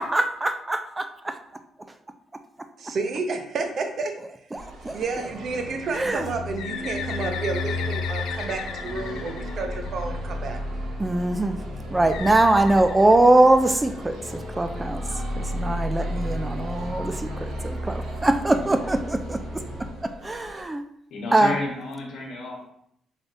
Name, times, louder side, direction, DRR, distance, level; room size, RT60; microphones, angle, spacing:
voice 1, 0.0-1.4 4.5-5.0 5.9-6.2 11.0-11.6 11.9-19.6 20.0-20.8 21.3-21.5, right 2 dB, 20° right, 7 dB, 0.3 m, -22 dB
voice 2, 2.8-4.2 4.9-10.6, right 3 dB, 60° right, 5 dB, 0.6 m, -30 dB
sound 1, 4.5-20.6, right 1 dB, 80° right, 0.9 m, -42 dB
sound 2, 5.2-19.9, left 1 dB, 20° left, 0.7 m, -33 dB
Bird, 6.6-10.3 12.1-13.8, left 7 dB, 90° left, 0.3 m, -36 dB
voice 3, 21.1-22.7, left 2 dB, 75° left, 0 dB, 1.0 m, -31 dB
3.8 x 3.4 x 2.6 m, 0.72 s
cardioid pair, 90°, 0 cm